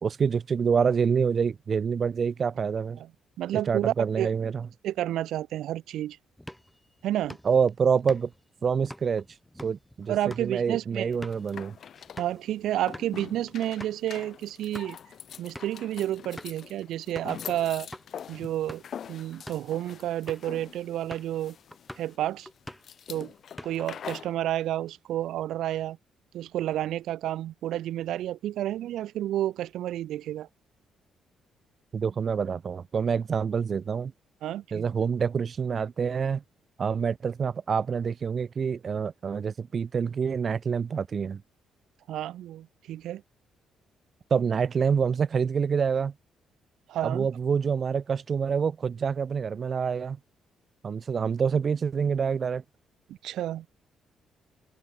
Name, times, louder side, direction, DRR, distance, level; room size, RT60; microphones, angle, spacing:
voice 1, 0.0-3.0 3.5-4.7 7.4-8.3 8.6-9.2 9.6-11.8 31.9-34.1 34.7-36.4 36.8-41.4 44.3-46.1 47.0-50.2 50.8-52.6, right 6 dB, 45° right, 0.4 m, -27 dB
voice 2, 3.4-4.3 4.8-6.2 7.0-7.4 10.1-11.1 12.2-15.0 15.4-17.9 18.3-18.8 19.1-21.5 22.0-22.5 23.1-23.3 23.6-26.0 26.3-30.5 34.4-34.8 42.1-43.2 46.9-47.3 53.2-53.7, right 13 dB, 80° right, 1.6 m, -30 dB
sound 1, 6.4-12.4 12.8-13.1 13.5-13.6 13.8-14.0 14.5-15.0 15.5-15.8 16.4-16.7 17.2-17.4 17.9-18.1 18.5-19.0 19.3-19.7 20.3-20.6 21.1-21.4 21.7-22.1 22.5-23.0 23.3-24.0, left 1 dB, 5° left, 5.6 m, -45 dB
sound 2, 11.1-24.4, left 8 dB, 60° left, 2.2 m, -44 dB
cardioid pair, 90°, 0 cm